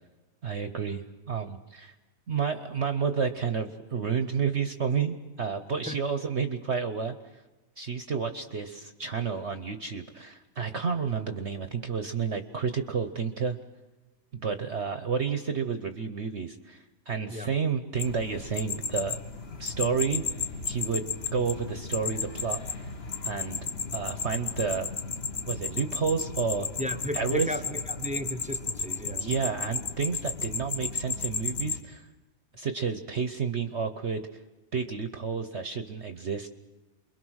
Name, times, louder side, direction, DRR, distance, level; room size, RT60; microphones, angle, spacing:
voice 1, 0.4-1.9 2.3-7.1 7.8-13.6 14.3-19.2 19.6-20.3 20.7-21.0 21.3-22.6 23.2-23.6 23.9-24.9 25.5-26.7 27.1-27.5 29.1-32.0 32.5-34.2 34.7-36.5, right 6 dB, 50° right, 9 dB, 1.0 m, -30 dB
sound 1, 18.0-31.8, left 5 dB, 40° left, 1.3 m, -34 dB
voice 2, 26.8-29.2, equal, 10° right, 8 dB, 0.5 m, -34 dB
29.0 x 22.5 x 6.4 m, 1.1 s
omnidirectional pair, 1.8 m